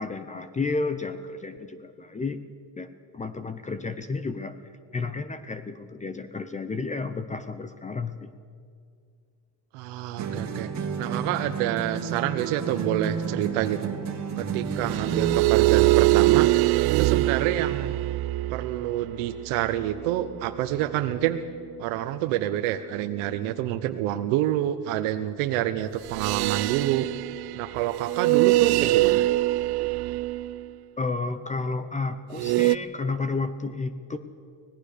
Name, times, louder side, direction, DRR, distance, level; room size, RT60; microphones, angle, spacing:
voice 1, 0.0-2.4 2.8-4.5 4.9-8.3 31.0-34.2, left 3 dB, 15° left, 11 dB, 0.7 m, -31 dB
voice 2, 9.7-10.7 11.0-13.9 14.4-16.5 17.0-17.9 18.5-21.4 21.8-27.1 27.5-29.3, right 13 dB, 90° right, 8 dB, 1.1 m, -27 dB
sound 1, 10.2-15.5, right 6 dB, 35° right, 2.4 m, -31 dB
sound 2, 14.8-20.3 26.1-30.7 32.3-32.8, right 18 dB, 55° right, 0.5 m, -23 dB
25.0 x 18.0 x 6.8 m, 2.3 s
cardioid pair, 150°, 47 cm